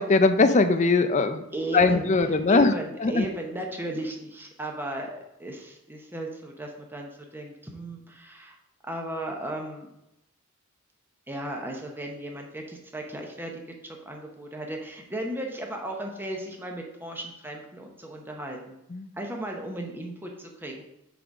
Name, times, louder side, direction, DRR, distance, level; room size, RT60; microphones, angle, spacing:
voice 1, 0.0-1.4 1.7-2.7 3.0-3.3 18.9-19.1, left 3 dB, 35° left, 9 dB, 0.5 m, -20 dB
voice 2, 1.5-2.1 2.5-8.6 8.9-9.9 11.3-13.5 13.8-18.8 19.1-20.8, right 1 dB, 10° right, 1 dB, 1.0 m, -35 dB
6.8 x 4.0 x 4.7 m, 0.84 s
head